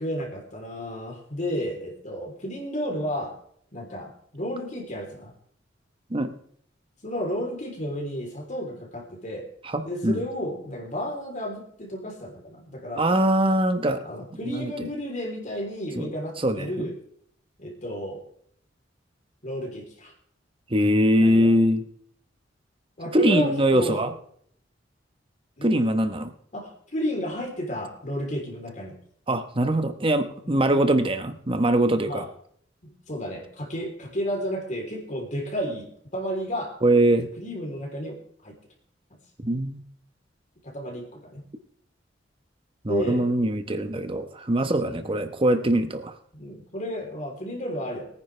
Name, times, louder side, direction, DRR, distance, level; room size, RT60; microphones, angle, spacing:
voice 1, 0.0-3.3 3.7-5.3 7.0-9.5 9.8-13.1 14.0-17.0 17.6-18.2 19.4-20.1 21.2-21.5 23.0-24.1 25.6-25.9 26.5-29.0 30.4-30.6 32.0-32.3 32.8-36.7 37.4-38.2 38.4-38.5 39.1-39.2 40.6-41.4 42.9-43.3 44.6-45.2 46.3-48.1, equal, 40° left, 1 dB, 3.4 m, -32 dB
voice 2, 9.6-10.2 13.0-14.0 14.4-14.7 16.0-16.1 16.4-16.9 20.7-21.8 23.1-24.1 25.6-26.3 29.3-32.3 36.8-37.3 39.4-39.8 42.8-46.1, right 1 dB, 30° right, 9 dB, 1.0 m, -22 dB
22.5 x 9.9 x 3.3 m, 0.64 s
head